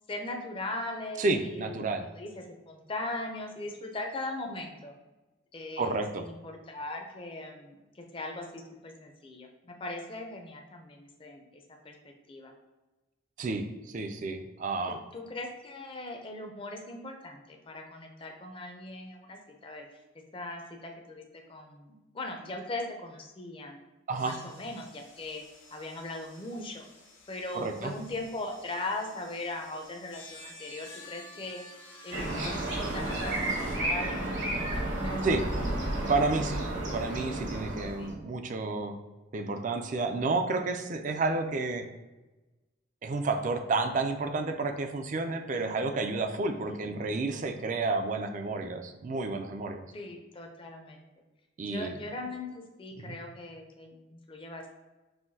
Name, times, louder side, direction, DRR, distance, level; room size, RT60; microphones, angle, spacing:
voice 1, 0.1-5.0 5.5-12.0 12.3-12.5 14.9-19.9 20.3-21.2 21.5-23.8 24.2-25.4 25.7-26.9 27.3-31.6 32.0-35.2 38.0-38.2 45.5-45.9 46.5-46.8 49.9-51.1 51.6-54.7, left 2 dB, 25° left, 3 dB, 0.5 m, -40 dB
voice 2, 1.2-2.1 5.8-6.3 13.4-15.0 24.1-24.4 27.5-27.9 35.2-35.4 36.1-36.6 36.9-38.9 39.3-41.9 43.0-49.9 51.6-52.0 53.0-53.2, right 3 dB, 40° right, 6 dB, 0.3 m, -30 dB
sound 1, 24.1-33.8, left 2 dB, 85° left, 1.1 m, -51 dB
sound 2, 32.1-38.1, right 1 dB, 65° right, 1.0 m, -32 dB
5.6 x 2.6 x 2.7 m, 1.1 s
head